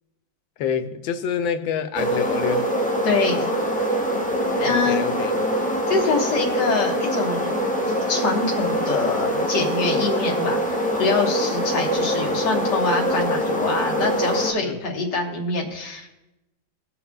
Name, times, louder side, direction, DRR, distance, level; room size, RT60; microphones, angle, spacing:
voice 1, 0.6-2.7 4.6-5.4 14.6-14.8, left 7 dB, 80° left, 1.4 m, -26 dB
sound 1, 1.9-14.5, equal, 5° left, 1.1 m, -24 dB
voice 2, 3.0-3.5 4.6-5.0 5.9-7.7 8.1-16.1, left 3 dB, 65° left, 2.2 m, -25 dB
20.0 x 7.0 x 2.4 m
omnidirectional pair, 2.1 m